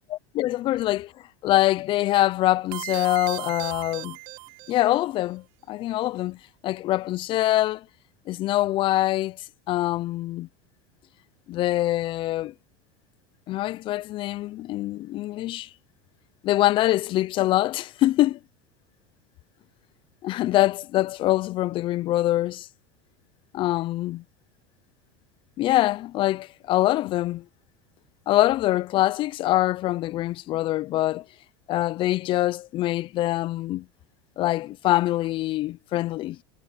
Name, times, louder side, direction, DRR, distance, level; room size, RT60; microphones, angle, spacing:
voice 1, 0.1-1.1 1.4-4.2 4.7-6.4 6.6-7.8 8.3-10.5 11.5-12.5 13.5-15.7 16.4-18.4 20.2-22.7 23.5-24.2 25.6-27.4 28.3-31.2 31.7-33.9 34.4-36.4, left 15 dB, 45° left, 0.6 m, -24 dB
sound 1, 2.7-5.0, right 23 dB, 70° right, 2.0 m, -36 dB
supercardioid pair, 115°, 12 cm